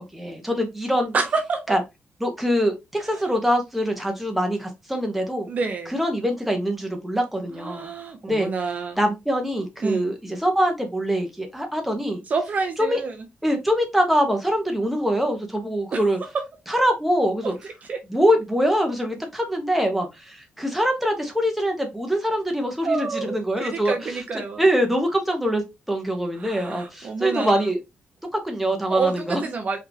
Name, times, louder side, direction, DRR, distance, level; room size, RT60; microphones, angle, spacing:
voice 1, 0.0-1.1 1.7-1.8 2.2-5.5 5.9-7.9 8.2-8.5 9.0-12.2 12.8-13.0 13.4-16.2 16.7-17.5 18.1-24.2 24.6-27.8 28.3-29.4, equal, 5° right, 1.1 m, -24 dB
voice 2, 1.1-1.8 3.2-3.3 5.5-6.0 7.5-9.0 9.8-10.1 12.3-13.3 15.9-16.1 17.4-17.5 17.9-18.0 22.8-24.6 26.3-27.7 28.9-29.8, right 4 dB, 45° right, 0.7 m, -28 dB
4.7 x 3.5 x 2.9 m
wide cardioid pair, 145°, 4 cm